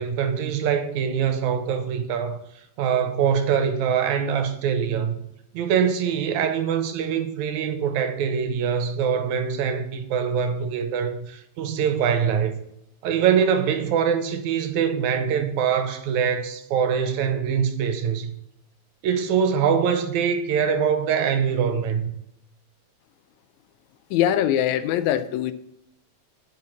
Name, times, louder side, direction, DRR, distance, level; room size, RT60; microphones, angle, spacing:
voice 1, 0.0-2.4 2.8-5.2 5.5-12.6 13.0-18.3 19.0-22.1, right 7 dB, 80° right, 2.2 m, -23 dB
voice 2, 24.1-25.5, left 11 dB, 80° left, 1.9 m, -22 dB
7.6 x 5.7 x 6.3 m
omnidirectional pair, 3.4 m